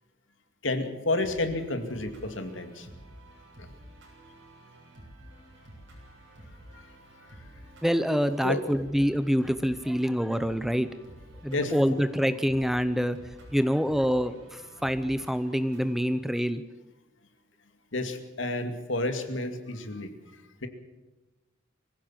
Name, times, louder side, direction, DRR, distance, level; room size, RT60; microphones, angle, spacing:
voice 1, 0.6-2.9 3.6-3.7 6.7-6.9 7.2-7.4 8.4-8.6 11.5-11.7 17.9-20.7, left 2 dB, 70° left, 7 dB, 2.4 m, -31 dB
sound 1, 1.2-16.1, right 1 dB, 60° right, 7.1 m, -51 dB
voice 2, 7.8-10.9 11.4-13.2 13.5-16.6, equal, ahead, 12 dB, 0.7 m, -26 dB
24.0 x 16.0 x 7.5 m, 1.1 s
head